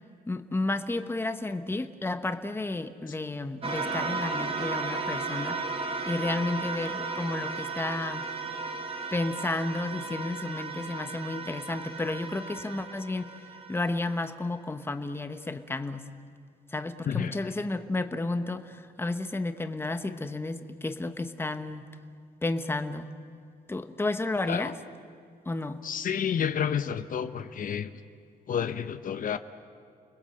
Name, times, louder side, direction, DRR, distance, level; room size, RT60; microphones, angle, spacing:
voice 1, 0.3-5.6 6.1-8.3 9.1-13.3 13.7-16.1 16.7-21.8 22.4-23.1 23.7-24.8 25.4-25.8, left 2 dB, 15° left, 9 dB, 1.1 m, -32 dB
sound 1, 3.6-14.3, right 4 dB, 35° right, 3.2 m, -35 dB
voice 2, 25.8-27.9 28.5-29.4, left 8 dB, 55° left, 10 dB, 0.8 m, -30 dB
29.5 x 21.0 x 7.8 m, 2.4 s
cardioid pair, 135°, 16 cm